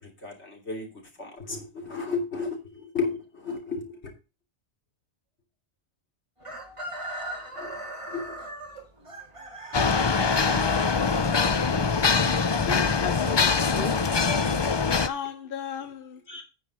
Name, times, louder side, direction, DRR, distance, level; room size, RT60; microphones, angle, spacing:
voice 1, 0.0-0.9 1.2-4.1 7.6-7.7 8.1-8.4 12.5-12.8 16.3-16.4, left 4 dB, 85° left, 3.3 m, -33 dB
Chicken rooster, 6.4-12.4, right 1 dB, 30° right, 1.8 m, -39 dB
sound 1, 9.7-15.1, left 5 dB, 35° left, 0.5 m, -23 dB
voice 2, 11.2-11.7 12.6-14.0 15.1-16.2, left 7 dB, 60° left, 0.9 m, -36 dB
9.3 x 5.1 x 6.2 m
omnidirectional pair, 1.1 m